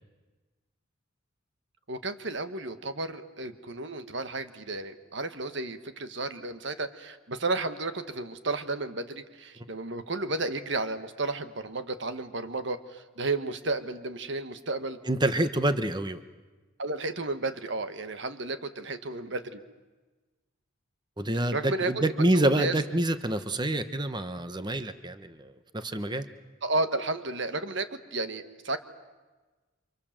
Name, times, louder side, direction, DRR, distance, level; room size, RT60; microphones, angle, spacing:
voice 1, 1.9-15.0 16.8-19.6 21.5-22.0 22.6-22.7 26.6-28.8, right 2 dB, 60° right, 10 dB, 1.5 m, -32 dB
voice 2, 15.1-16.2 21.2-26.3, right 1 dB, 20° right, 11 dB, 1.1 m, -27 dB
29.0 x 25.5 x 7.5 m, 1.3 s
head